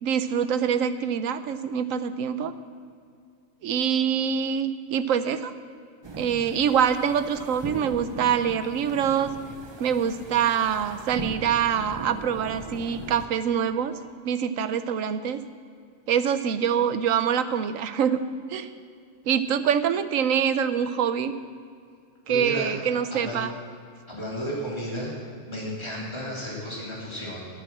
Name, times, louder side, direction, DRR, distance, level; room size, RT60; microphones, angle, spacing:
voice 1, 0.0-2.5 3.6-5.5 6.2-9.3 9.8-13.9 14.2-15.4 16.1-18.2 18.5-18.7 19.3-21.3 22.3-23.5, right 8 dB, 75° right, 11 dB, 1.1 m, -25 dB
sound 1, 6.0-13.3, right 3 dB, 30° right, 0.6 m, -39 dB
voice 2, 22.3-22.8 23.1-23.4 24.1-25.2 25.5-27.5, equal, 20° left, -6 dB, 3.5 m, -33 dB
13.5 x 8.5 x 7.4 m, 2.3 s
omnidirectional pair, 1.4 m